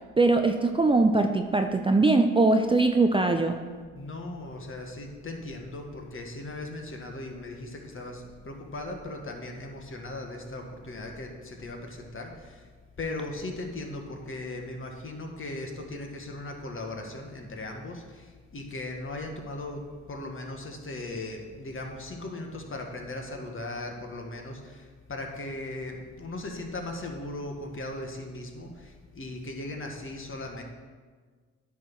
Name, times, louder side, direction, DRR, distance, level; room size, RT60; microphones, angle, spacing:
voice 1, 0.2-3.6, right 3 dB, 15° right, 6 dB, 0.5 m, -22 dB
voice 2, 3.9-12.6 13.0-19.8 20.1-30.6, left 2 dB, 40° left, 2 dB, 1.5 m, -38 dB
10.0 x 3.6 x 6.1 m, 1.5 s
hypercardioid pair, 50°, 33 cm